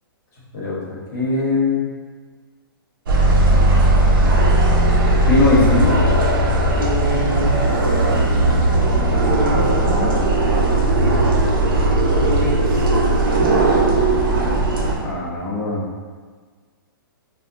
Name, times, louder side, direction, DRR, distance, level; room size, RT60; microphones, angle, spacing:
voice 1, 1.1-1.9 5.3-5.9 15.0-15.8, left 2 dB, 50° left, -5 dB, 1.1 m, -19 dB
sound 1, 3.1-15.0, right 1 dB, 65° right, 0.6 m, -17 dB
voice 2, 6.8-8.3 9.2-10.2 10.9-11.3 12.2-13.8 14.3-14.6, right 1 dB, 25° right, -9 dB, 1.0 m, -28 dB
3.4 x 2.2 x 2.6 m, 1.5 s
hypercardioid pair, 155°, 12 cm